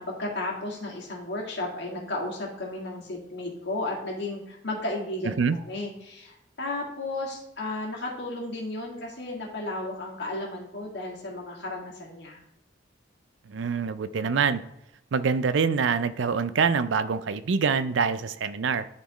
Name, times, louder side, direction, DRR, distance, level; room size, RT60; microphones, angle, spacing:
voice 1, 0.0-12.4, left 2 dB, 65° left, -2 dB, 2.0 m, -34 dB
voice 2, 13.5-14.6 15.1-18.9, right 5 dB, 75° right, 13 dB, 0.5 m, -25 dB
11.5 x 4.3 x 3.0 m, 0.83 s
head